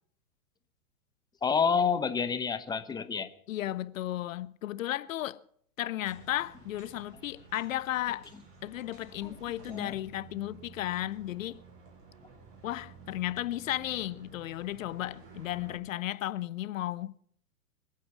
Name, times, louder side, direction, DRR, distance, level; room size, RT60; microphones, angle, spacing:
voice 1, 1.4-3.3 9.2-9.4 9.7-9.9, left 6 dB, 10° left, 0.8 m, -28 dB
voice 2, 3.5-5.4 5.8-8.3 8.6-11.6 12.6-17.1, left 14 dB, 60° left, 0.7 m, -34 dB
sound 1, 6.0-15.8, right 5 dB, 30° right, 6.5 m, -53 dB
24.5 x 8.6 x 6.0 m
hypercardioid pair, 125°, 45 cm